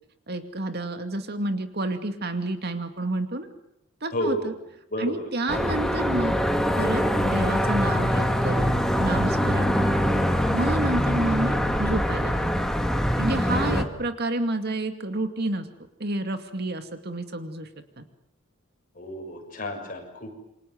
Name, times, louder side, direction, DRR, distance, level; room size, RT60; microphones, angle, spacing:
voice 1, 0.3-3.5 4.0-4.5 5.0-6.4 6.8-10.0 10.5-12.5 13.2-15.7 16.0-17.7 18.0-18.1, right 2 dB, 50° right, 7 dB, 2.4 m, -29 dB
voice 2, 4.1-4.5 4.9-5.3 13.4-13.8 18.9-20.3, equal, 40° left, 3 dB, 6.8 m, -31 dB
sound 1, 5.5-13.8, equal, ahead, 2.1 m, -23 dB
28.5 x 24.5 x 8.0 m, 0.80 s
head